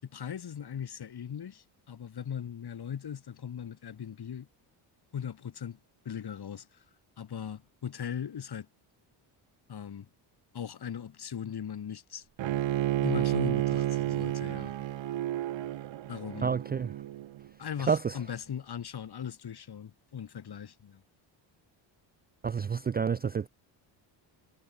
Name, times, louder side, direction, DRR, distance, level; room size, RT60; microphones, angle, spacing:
voice 1, 0.0-4.5 5.1-5.8 6.1-6.8 7.2-8.7 9.7-10.1 10.5-12.3 13.0-14.7 16.1-16.6 17.6-21.0, left 8 dB, 50° left, 7.1 m, -39 dB
Bowed string instrument, 12.4-17.5, right 13 dB, 65° right, 1.9 m, -31 dB
voice 2, 16.4-16.9 17.9-18.2 22.4-23.5, right 6 dB, 20° right, 0.4 m, -29 dB
cardioid pair, 85°, 49 cm